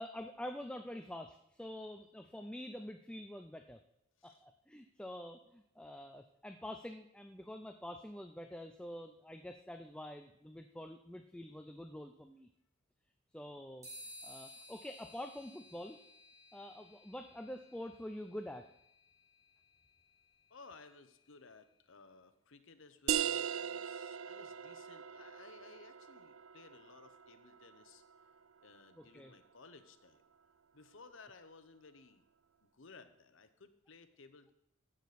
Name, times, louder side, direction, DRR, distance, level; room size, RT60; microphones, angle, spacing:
voice 1, 0.0-3.8 4.2-12.5 13.3-13.9 14.2-16.0 16.5-18.7 29.0-29.3, left 1 dB, 5° left, 6 dB, 0.4 m, -46 dB
sound 1, 13.8-21.5, left 1 dB, 15° right, 3.3 m, -57 dB
voice 2, 20.5-28.0 28.6-30.2 30.7-32.2 32.6-34.5, left 4 dB, 70° left, 10 dB, 0.8 m, -58 dB
sound 2, 23.1-28.4, right 9 dB, 70° right, 0.4 m, -40 dB
15.0 x 6.4 x 4.2 m, 0.83 s
head